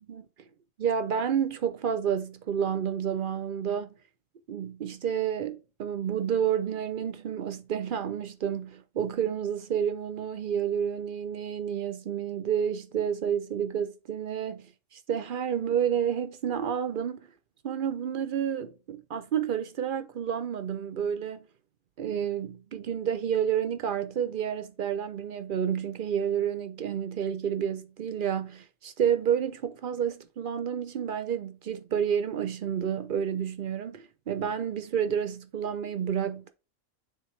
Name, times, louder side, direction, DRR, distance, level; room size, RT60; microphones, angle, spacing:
voice 1, 0.8-4.0 4.5-17.3 17.6-21.5 22.0-36.5, right 8 dB, 60° right, 0.5 m, -30 dB
9.0 x 3.7 x 3.1 m
omnidirectional pair, 1.3 m